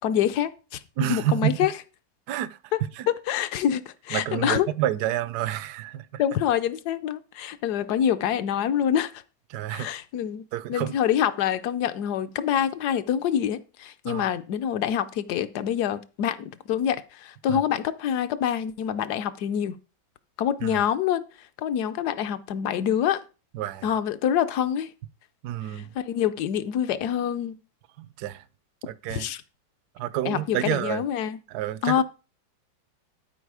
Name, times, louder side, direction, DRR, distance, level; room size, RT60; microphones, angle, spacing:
voice 1, 0.0-1.7 3.1-4.7 6.2-9.2 9.7-10.4 10.7-19.8 20.4-21.2 21.6-23.2 23.8-24.9 25.7-27.6 29.1-29.4 30.2-31.4 31.8-32.0, left 9 dB, 70° left, 1.1 m, -26 dB
voice 2, 1.0-1.6 2.3-2.6 3.0-3.1 4.1-6.2 9.5-9.9 10.5-10.9 14.0-14.3 17.5-17.6 20.6-20.8 23.5-23.9 25.4-25.9 28.0-28.4 28.8-29.3 30.0-31.0 31.5-32.0, right 12 dB, 70° right, 1.1 m, -29 dB
11.5 x 4.8 x 4.7 m
omnidirectional pair, 2.0 m